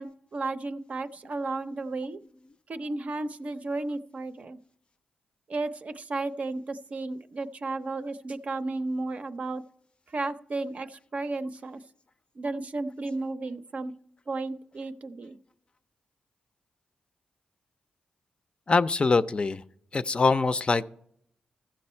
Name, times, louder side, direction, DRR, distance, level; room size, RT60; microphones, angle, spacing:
voice 1, 0.0-2.2 2.7-4.6 5.5-9.6 10.1-11.8 12.4-13.9 14.3-15.4, right 3 dB, 50° right, 10 dB, 0.6 m, -33 dB
voice 2, 18.7-19.6 19.9-20.9, left 4 dB, 35° left, 12 dB, 0.5 m, -23 dB
15.0 x 6.2 x 4.3 m, 0.69 s
cardioid pair, 80°, 3 cm